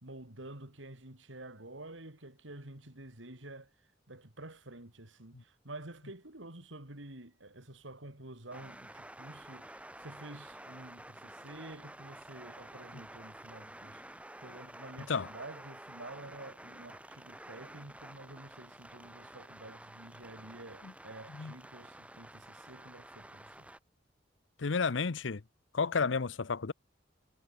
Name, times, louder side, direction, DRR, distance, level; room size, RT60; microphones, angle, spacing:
voice 1, 0.0-3.7 4.1-23.7, right 2 dB, 90° right, 4.1 m, -49 dB
sound 1, 8.5-23.8, right 1 dB, 5° right, 3.3 m, -51 dB
voice 2, 24.6-25.4 25.7-26.7, left 5 dB, 80° left, 0.7 m, -31 dB
head